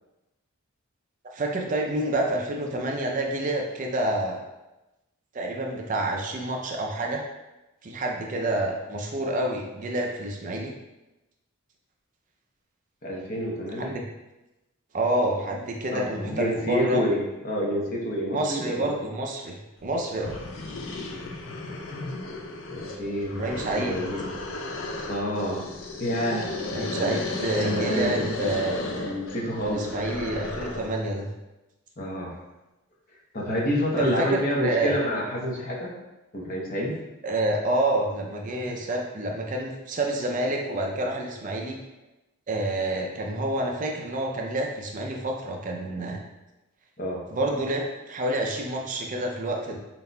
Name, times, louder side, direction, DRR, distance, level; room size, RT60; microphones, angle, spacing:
voice 1, 1.3-4.4 5.3-7.2 7.8-10.7 13.8-14.0 14.9-17.0 18.3-20.3 23.3-24.0 26.7-28.8 29.7-31.3 34.0-35.0 37.2-41.8 42.5-46.2 47.3-49.8, right 1 dB, 35° right, 1 dB, 0.4 m, -28 dB
voice 2, 13.0-13.9 15.9-19.0 20.1-20.3 22.7-24.4 25.1-25.7 26.0-26.5 26.9-27.2 27.6-28.3 28.8-29.9 32.0-32.4 33.3-35.9 36.3-36.9 38.6-38.8 47.0-47.2, equal, 40° left, -3 dB, 0.8 m, -28 dB
sound 1, 19.8-19.9 20.2-31.0, left 2 dB, 60° left, 0.5 m, -34 dB
4.3 x 3.9 x 2.2 m, 1.0 s
head